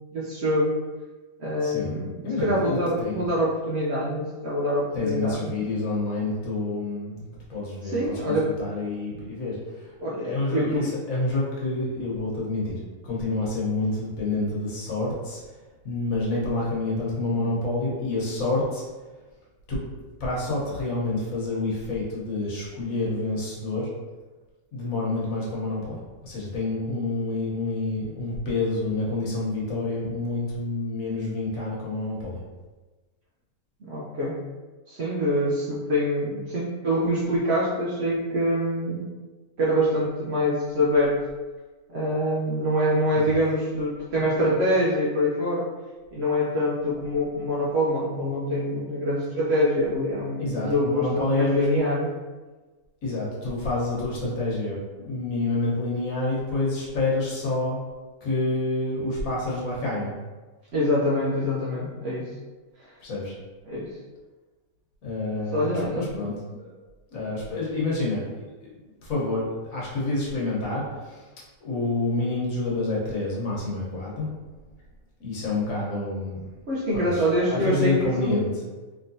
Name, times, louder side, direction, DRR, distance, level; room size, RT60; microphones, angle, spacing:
voice 1, 0.1-0.8 1.4-2.1 2.4-5.6 7.8-8.5 10.0-10.9 33.8-34.4 34.9-39.0 39.6-41.2 41.9-45.7 46.1-52.1 60.7-62.3 63.7-63.9 65.5-66.0 76.7-78.5, equal, 60° right, -6 dB, 0.8 m, -25 dB
voice 2, 1.6-1.9 2.2-3.3 4.9-7.2 7.5-9.9 10.2-12.8 13.0-15.4 15.8-18.8 19.7-19.8 20.2-23.9 24.7-26.0 26.2-32.4 43.1-43.2 50.4-51.9 53.0-57.8 58.2-60.1 63.0-63.3 65.0-66.7 67.1-68.2 68.6-68.7 69.0-71.2 71.6-74.3 75.2-76.4 76.9-78.5, left 2 dB, 70° left, -5 dB, 1.4 m, -28 dB
3.3 x 3.0 x 2.6 m, 1.3 s
omnidirectional pair, 1.5 m